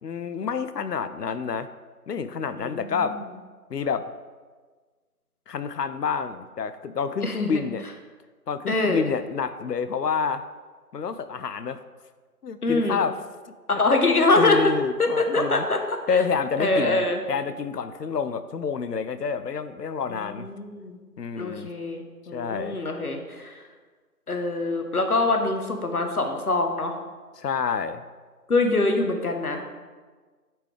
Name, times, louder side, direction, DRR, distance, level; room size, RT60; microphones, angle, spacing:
voice 1, 0.0-1.7 2.1-3.2 3.7-4.1 5.5-7.8 8.5-10.4 10.9-11.8 12.4-13.2 13.7-15.7 16.1-20.5 21.2-21.7 22.3-22.8 27.4-28.0, left 6 dB, 85° left, 12 dB, 0.6 m, -28 dB
voice 2, 2.5-3.1 7.2-7.6 8.7-9.0 12.6-13.0 13.7-14.6 15.0-15.8 16.1-16.2 16.6-17.2 20.1-21.0 21.4-23.6 24.3-26.9 28.5-29.6, left 2 dB, 70° left, 4 dB, 1.0 m, -24 dB
8.7 x 4.4 x 3.2 m, 1.4 s
figure-of-eight pair, 180°, 47 cm